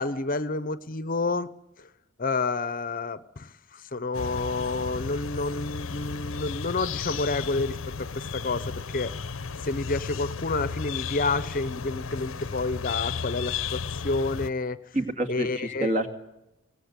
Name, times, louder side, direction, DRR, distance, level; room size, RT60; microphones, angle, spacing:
voice 1, 0.0-1.5 1.8-1.9 2.2-9.1 9.6-14.8 15.3-15.9, left 3 dB, 45° left, 14 dB, 0.8 m, -29 dB
sound 1, 4.1-14.5, left 5 dB, 80° left, 0.8 m, -34 dB
voice 2, 14.9-16.1, right 1 dB, 40° right, 6 dB, 2.3 m, -27 dB
24.0 x 18.5 x 8.3 m, 0.91 s
head